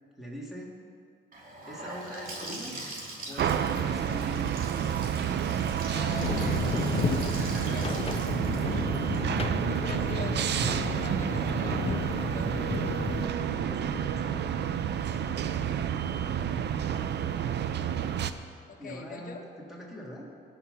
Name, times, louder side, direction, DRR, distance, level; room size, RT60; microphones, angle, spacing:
voice 1, 0.2-0.7 1.7-2.8 3.3-4.4 7.2-7.8 13.5-14.5 18.8-20.3, equal, ahead, -4 dB, 3.3 m, -42 dB
Gurgling / Sink (filling or washing) / Bathtub (filling or washing), 1.3-11.1, right 1 dB, 45° right, 2.8 m, -43 dB
sound 1, 3.4-18.3, right 8 dB, 60° right, 0.6 m, -29 dB
voice 2, 5.9-9.3 9.6-13.1 18.7-19.5, left 4 dB, 45° left, 0 dB, 1.6 m, -43 dB
sound 2, 6.2-13.3, left 6 dB, 30° left, 0.5 m, -33 dB
17.5 x 6.1 x 5.7 m, 2.3 s
cardioid pair, 90°, 20 cm